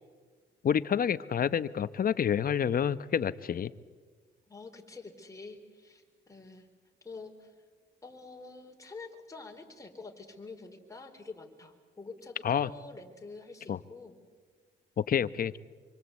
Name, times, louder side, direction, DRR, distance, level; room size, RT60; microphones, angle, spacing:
voice 1, 0.6-3.7 12.4-12.7 13.7-13.8 15.0-15.6, left 8 dB, 45° left, 15 dB, 0.9 m, -28 dB
voice 2, 4.5-6.7 7.0-7.5 8.0-14.2 15.1-15.3, left 3 dB, 15° left, 2 dB, 4.2 m, -47 dB
26.5 x 24.5 x 8.2 m, 1.5 s
cardioid pair, 90°, 20 cm